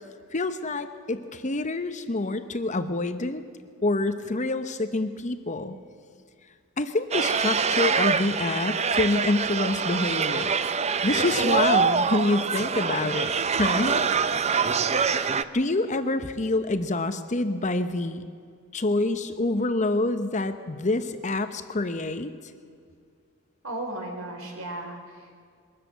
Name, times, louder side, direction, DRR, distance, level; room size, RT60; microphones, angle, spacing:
voice 1, 0.3-3.4 3.8-5.8 6.8-10.5 11.0-14.0 15.5-18.2 18.7-22.3, left 2 dB, 35° left, 10 dB, 0.9 m, -27 dB
sound 1, 7.1-15.4, right 5 dB, 30° right, 0.6 m, -25 dB
voice 2, 23.6-25.3, right 1 dB, 65° right, 3 dB, 3.9 m, -35 dB
22.5 x 13.5 x 9.2 m, 2.3 s
head